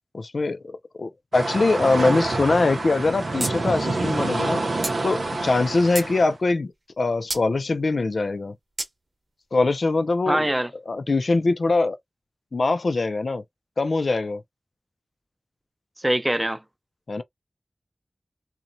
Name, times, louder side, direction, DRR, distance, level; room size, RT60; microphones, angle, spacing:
voice 1, 0.1-4.6 5.0-8.5 9.5-10.5 10.9-12.0 12.5-13.4 13.8-14.4 17.1-17.2, left 3 dB, 75° left, 0.3 m, -23 dB
sound 1, 1.3-6.3, right 2 dB, 90° right, 0.6 m, -27 dB
sound 2, 3.4-3.5 3.8-3.9 4.8-5.0 5.6-6.1 7.3-7.5 8.8-8.9, right 2 dB, 60° right, 0.9 m, -29 dB
voice 2, 10.3-10.7 16.0-16.6, right 1 dB, 20° right, 0.5 m, -23 dB
2.9 x 2.1 x 2.5 m
wide cardioid pair, 50°, 0 cm